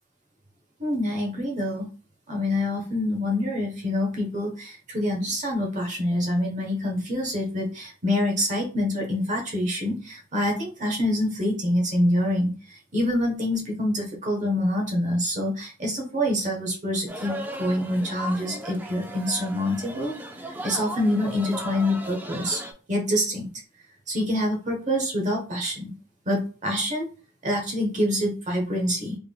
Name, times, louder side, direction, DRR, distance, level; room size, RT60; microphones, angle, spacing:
voice 1, 0.8-1.8 2.3-12.5 12.9-20.1 20.6-22.6 22.9-23.5 24.1-25.9 26.3-27.1 27.4-29.2, left 1 dB, 35° right, 0 dB, 1.1 m, -26 dB
sound 1, 17.1-22.7, right 1 dB, 10° right, 0.4 m, -37 dB
3.7 x 3.4 x 2.3 m, 0.36 s
head